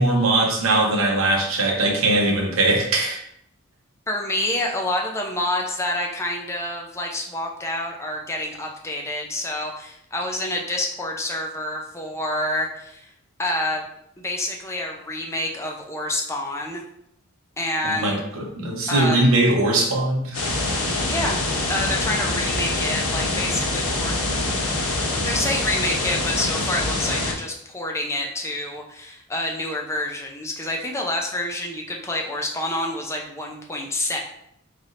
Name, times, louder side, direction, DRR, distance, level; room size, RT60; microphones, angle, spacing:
voice 1, 0.0-3.2 17.8-20.4, right 2 dB, 70° right, 0 dB, 0.9 m, -20 dB
voice 2, 4.1-13.1 13.4-13.8 14.2-16.8 17.6-18.2 18.9-19.2 21.1-21.4 21.7-24.1 25.2-34.2, left 1 dB, 15° left, 0 dB, 0.5 m, -27 dB
sound 1, 20.3-27.3, left 2 dB, 85° left, 0.8 m, -25 dB
4.1 x 3.4 x 2.5 m, 0.74 s
head